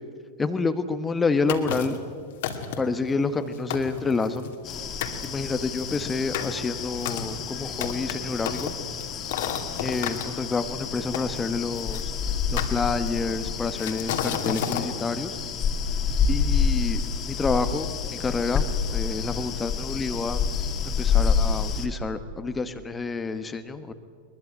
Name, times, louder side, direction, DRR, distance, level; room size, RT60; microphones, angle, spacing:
voice 1, 0.4-2.0 2.8-4.5 5.2-8.7 9.8-12.1 12.5-15.4 16.3-17.9 18.2-20.4 20.8-23.9, left 4 dB, 15° left, 10 dB, 1.4 m, -28 dB
sound 1, 1.5-2.0 2.4-3.0 3.4-3.5 3.7-4.7 5.0-5.3 5.8-10.3 11.1-12.0 12.6-13.3 13.8-14.9, left 8 dB, 55° left, 2.4 m, -31 dB
sound 2, 4.6-21.9, left 6 dB, 30° left, 2.4 m, -28 dB
22.5 x 22.0 x 8.8 m, 2.1 s
figure-of-eight pair, 90°, 0 cm